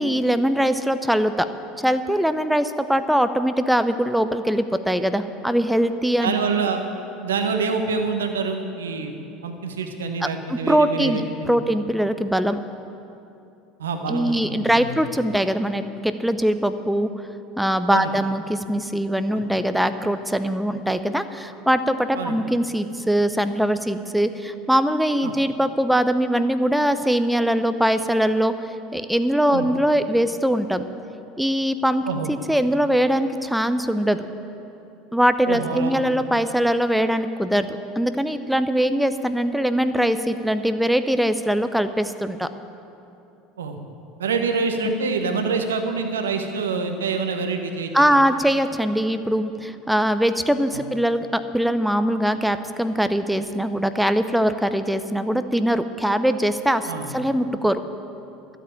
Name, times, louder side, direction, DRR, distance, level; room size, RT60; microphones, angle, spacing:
voice 1, 0.0-1.5 1.8-6.3 10.5-11.2 11.5-12.6 14.1-17.1 17.6-28.5 28.9-30.8 31.4-32.0 32.3-34.2 35.1-42.5 47.9-57.8, equal, ahead, 10 dB, 0.6 m, -22 dB
voice 2, 6.2-6.8 7.2-9.1 9.4-11.6 13.8-15.0 17.9-18.1 19.3-19.4 22.2-22.4 25.2-25.3 29.5-29.7 32.0-32.3 35.5-36.0 43.6-43.8 44.2-48.2 50.7-50.8 56.8-57.1, right 4 dB, 75° right, 6 dB, 1.1 m, -26 dB
12.5 x 8.2 x 8.8 m, 2.8 s
figure-of-eight pair, 70°, 0 cm